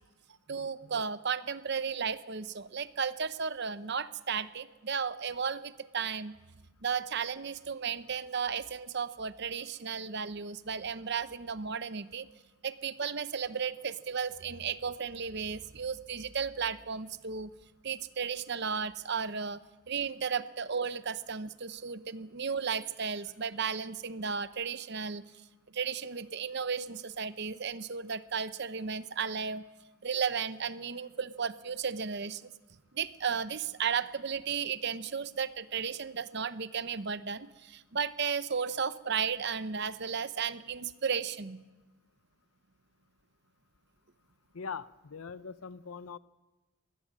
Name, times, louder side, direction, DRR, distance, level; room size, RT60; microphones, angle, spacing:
voice 1, 0.5-6.4 6.8-12.3 12.6-17.5 17.8-19.6 19.9-25.2 25.7-29.6 30.0-32.5 32.9-41.6, right 6 dB, 50° right, 14 dB, 0.7 m, -34 dB
voice 2, 44.5-46.2, left 5 dB, 75° left, 16 dB, 0.7 m, -41 dB
22.5 x 16.5 x 7.6 m, 1.2 s
head